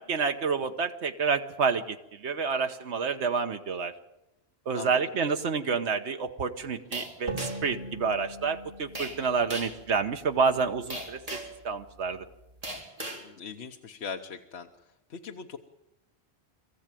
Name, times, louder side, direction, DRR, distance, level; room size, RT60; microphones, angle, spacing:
voice 1, 0.0-3.9 4.7-11.4 11.6-12.2, right 5 dB, 85° right, 6 dB, 1.4 m, -29 dB
sound 1, 6.9-7.7 8.9-9.2 9.5-9.8 10.9-11.6 12.6-13.2, right 1 dB, 35° right, 3.8 m, -37 dB
sound 2, 7.3-10.8, right 1 dB, 65° right, 3.9 m, -41 dB
voice 2, 13.1-14.7 15.1-15.6, left 6 dB, 75° left, 5 dB, 1.3 m, -40 dB
23.5 x 15.0 x 9.1 m, 0.91 s
omnidirectional pair, 1.1 m